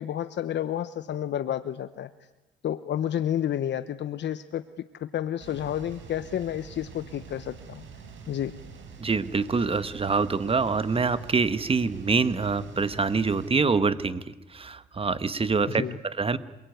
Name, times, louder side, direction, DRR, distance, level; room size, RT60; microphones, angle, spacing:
voice 1, 0.0-2.1 2.6-4.6 4.9-7.8 8.3-8.5 15.7-16.0, left 10 dB, 65° left, 11 dB, 1.1 m, -30 dB
sound 1, 5.4-13.5, right 6 dB, 75° right, 5.8 m, -45 dB
voice 2, 9.0-16.4, right 4 dB, 30° right, 13 dB, 1.5 m, -25 dB
27.5 x 22.5 x 9.5 m, 1.0 s
cardioid pair, 90°, 20 cm